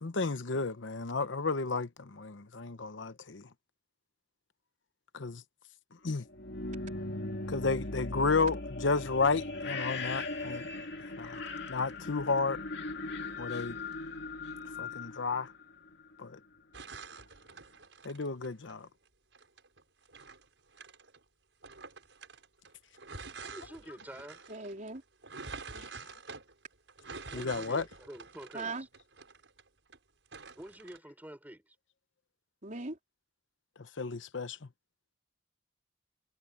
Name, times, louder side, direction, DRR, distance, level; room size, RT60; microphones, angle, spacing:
voice 1, 0.0-3.4 5.1-5.4 6.0-6.2 7.5-8.6 8.8-10.6 11.2-11.4 11.7-12.6 13.4-13.7 14.8-15.5 16.2-16.4 18.0-18.9 25.7-25.8 27.3-27.8 34.0-34.6, left 4 dB, 85° left, 0.9 m, -32 dB
sound 1, 6.3-16.1, left 3 dB, 65° left, 2.4 m, -39 dB
sound 2, 16.7-18.8 19.3-21.2 21.6-30.0 30.3-31.0, right 4 dB, 80° right, 6.3 m, -47 dB
voice 2, 23.4-24.4 27.3-28.7 30.5-31.7, equal, 10° right, 4.8 m, -48 dB
voice 3, 24.5-25.0 28.5-28.9 32.6-33.0, right 3 dB, 45° right, 3.9 m, -39 dB
head